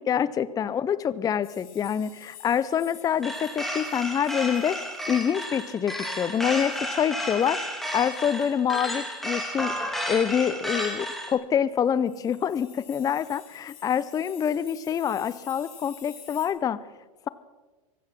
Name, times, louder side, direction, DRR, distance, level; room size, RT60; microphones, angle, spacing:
voice 1, 0.0-4.8 5.1-7.6 7.9-9.7 10.1-16.8, left 8 dB, 20° left, 16 dB, 0.5 m, -26 dB
sound 1, 1.4-7.6 7.9-8.0 8.2-8.5 8.9-9.0 9.8-9.9 11.7-16.5, left 10 dB, 75° left, 3.9 m, -51 dB
sound 2, 3.2-11.3, equal, ahead, 2.5 m, -32 dB
24.0 x 8.4 x 5.8 m, 1.2 s
hypercardioid pair, 100°, 18 cm